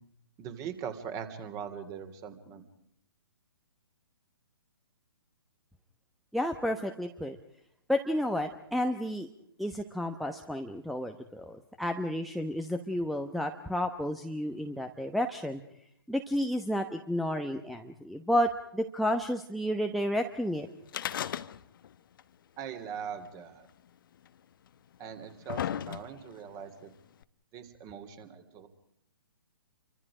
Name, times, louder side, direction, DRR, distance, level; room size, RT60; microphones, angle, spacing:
voice 1, 0.4-2.6 22.6-23.7 25.0-26.9 27.5-28.7, right 7 dB, 25° right, 9 dB, 3.2 m, -41 dB
voice 2, 6.3-7.4 7.9-9.3 9.6-15.6 16.1-20.7, equal, ahead, 3 dB, 1.0 m, -31 dB
sound 1, 20.9-21.9 22.2-22.3 23.3-23.4 24.3-24.4 25.0-26.4 27.2-27.3, left 10 dB, 55° left, 1.0 m, -35 dB
30.0 x 25.0 x 5.0 m, 0.72 s
figure-of-eight pair, 130°, 14 cm